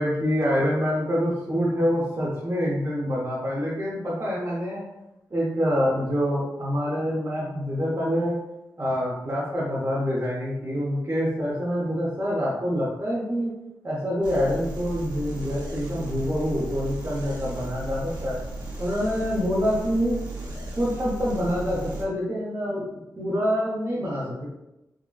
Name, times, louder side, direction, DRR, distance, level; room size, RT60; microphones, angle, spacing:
voice 1, 0.0-4.8 5.3-8.4 8.8-13.5 13.8-18.4 18.8-20.2 20.8-22.8 23.2-24.4, equal, 40° right, -8 dB, 0.8 m, -26 dB
sound 1, 14.2-22.0, right 1 dB, 80° right, 0.7 m, -35 dB
3.7 x 2.1 x 2.3 m, 0.92 s
wide cardioid pair, 85°, 7 cm